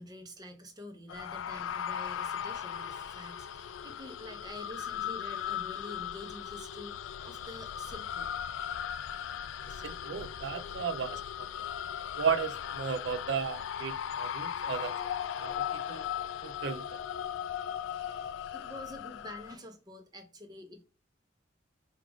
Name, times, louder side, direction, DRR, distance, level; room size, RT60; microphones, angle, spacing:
voice 1, 0.0-8.3 17.9-20.8, left 1 dB, 20° right, 0.7 m, -47 dB
sound 1, 1.1-19.6, left 9 dB, 85° left, 0.3 m, -38 dB
voice 2, 9.8-11.2 11.6-11.7 12.2-14.9 15.3-16.1 16.4-17.0, right 6 dB, 65° right, 0.4 m, -34 dB
4.8 x 2.4 x 3.3 m
head